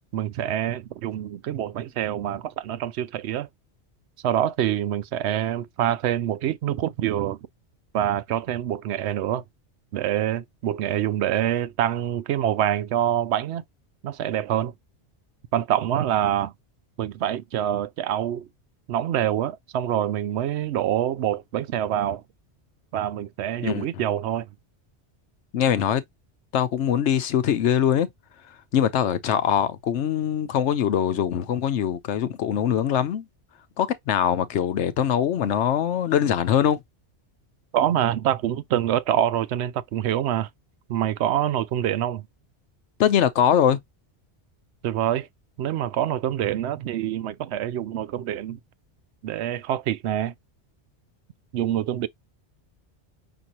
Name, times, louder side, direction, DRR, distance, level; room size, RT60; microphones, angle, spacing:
voice 1, 0.1-3.5 4.2-7.4 7.9-9.4 9.9-13.6 14.0-14.7 15.5-16.5 17.0-18.5 18.9-22.2 22.9-24.5 37.7-40.5 40.9-42.2 44.8-45.3 45.6-48.6 49.2-50.3 51.5-52.1, right 11 dB, 75° right, 0.8 m, -25 dB
voice 2, 25.5-26.0 26.5-28.1 28.7-33.2 33.8-36.8 43.0-43.8, left 9 dB, 80° left, 1.0 m, -22 dB
5.9 x 2.6 x 2.8 m
omnidirectional pair, 1.2 m